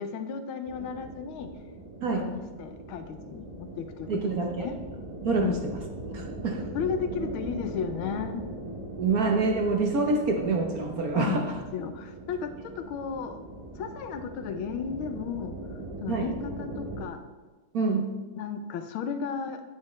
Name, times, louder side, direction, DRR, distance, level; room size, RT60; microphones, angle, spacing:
voice 1, 0.0-1.5 2.1-4.8 5.4-5.6 6.7-8.4 11.1-13.4 13.8-15.6 16.0-17.2 17.8-18.0 18.4-19.6, left 7 dB, 90° left, 8 dB, 1.6 m, -34 dB
sound 1, 0.7-17.0, right 2 dB, 30° right, 0.6 m, -40 dB
voice 2, 4.1-4.7 5.2-5.7 6.1-6.6 9.0-11.5 16.1-16.3 17.7-18.2, right 3 dB, 55° right, 2 dB, 1.2 m, -26 dB
9.5 x 9.4 x 3.2 m, 1.2 s
omnidirectional pair, 2.2 m